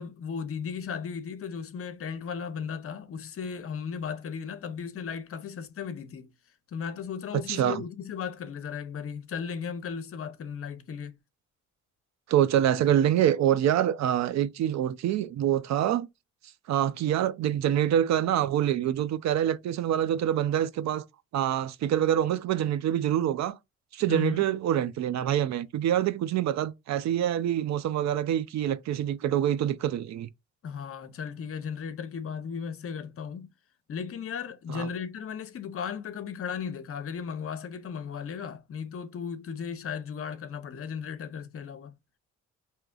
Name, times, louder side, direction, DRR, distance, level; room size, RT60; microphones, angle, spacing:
voice 1, 0.0-6.3 6.7-11.2 24.1-24.4 30.6-33.5 33.9-41.9, left 6 dB, 50° left, 0.7 m, -36 dB
voice 2, 7.5-7.8 12.3-16.1 16.7-21.0 21.3-23.6 23.9-30.3 34.7-34.9, right 11 dB, 65° right, 0.5 m, -26 dB
4.7 x 2.9 x 2.3 m
cardioid pair, 90°, 30 cm